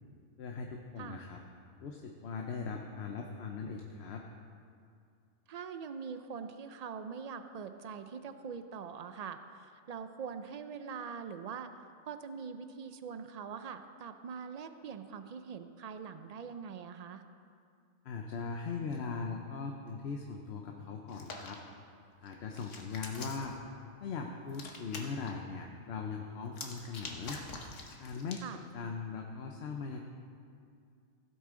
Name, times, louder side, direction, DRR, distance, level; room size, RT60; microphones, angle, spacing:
voice 1, 0.4-1.4 1.8-4.2 18.0-21.6 22.2-23.6 24.0-27.4 28.0-30.0, left 5 dB, 65° left, 2 dB, 0.9 m, -40 dB
voice 2, 5.5-11.7 12.1-17.2 28.4-28.6, right 6 dB, 65° right, 9 dB, 0.4 m, -43 dB
Hands, 21.1-21.5 22.3-23.5 24.5-25.3 26.5-28.5, left 3 dB, 85° left, 1.4 m, -45 dB
16.0 x 8.1 x 3.7 m, 2.4 s
omnidirectional pair, 1.2 m